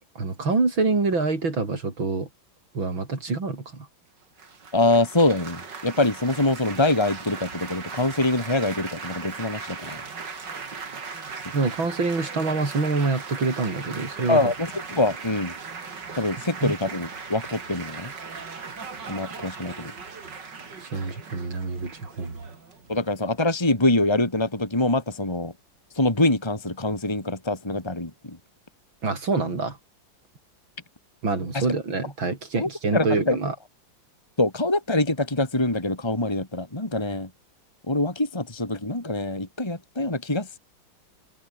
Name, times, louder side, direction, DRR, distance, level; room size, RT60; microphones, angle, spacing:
voice 1, 0.2-2.3 2.7-3.9 11.5-14.4 16.6-16.7 20.8-22.4 29.0-29.8 31.2-33.5, right 3 dB, 80° right, 5.5 m, -26 dB
Laughter / Applause / Chatter, 4.4-23.5, right 5 dB, 60° right, 3.5 m, -38 dB
voice 2, 4.7-10.0 14.3-15.5 16.2-18.1 19.1-19.9 22.9-25.5 25.9-28.4 31.5-31.7 32.6-33.4 34.4-37.3 37.9-40.6, left 2 dB, 15° left, 3.0 m, -24 dB
omnidirectional pair, 2.1 m